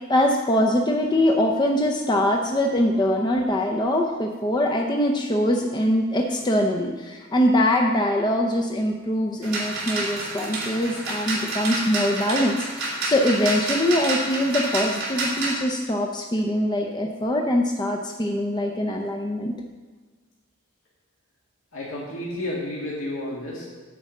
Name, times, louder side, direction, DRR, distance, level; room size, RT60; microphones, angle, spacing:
voice 1, 0.1-19.6, left 1 dB, 20° left, 2 dB, 0.6 m, -23 dB
sound 1, 9.4-15.6, right 2 dB, 50° right, 3.2 m, -29 dB
voice 2, 21.7-23.7, left 1 dB, 70° left, -5 dB, 2.0 m, -31 dB
9.7 x 4.8 x 7.2 m, 1.4 s
head